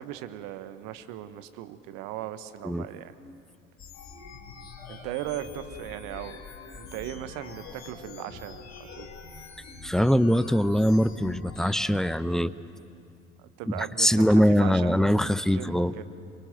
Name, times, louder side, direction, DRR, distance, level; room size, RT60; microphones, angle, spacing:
voice 1, 0.0-3.1 4.9-6.4 6.7-9.1 13.4-16.0, right 12 dB, 65° right, 12 dB, 1.1 m, -38 dB
sound 1, 3.8-11.9, left 4 dB, 55° left, 4.8 m, -44 dB
voice 2, 9.8-12.5 13.8-15.9, equal, ahead, 16 dB, 0.6 m, -22 dB
24.5 x 22.5 x 7.8 m, 2.4 s
figure-of-eight pair, 50°, 33 cm